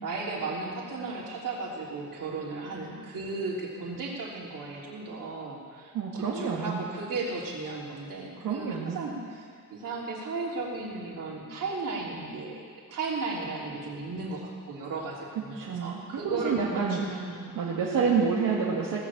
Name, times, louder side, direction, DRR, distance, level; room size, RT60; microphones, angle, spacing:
voice 1, 0.0-5.9 6.3-12.6 12.9-17.6, right 3 dB, 70° right, -4 dB, 3.2 m, -35 dB
voice 2, 5.9-6.8 8.4-9.0 15.6-17.0 17.6-19.0, right 5 dB, 90° right, -5 dB, 1.9 m, -28 dB
18.0 x 7.2 x 7.3 m, 2.1 s
wide cardioid pair, 140°, 34 cm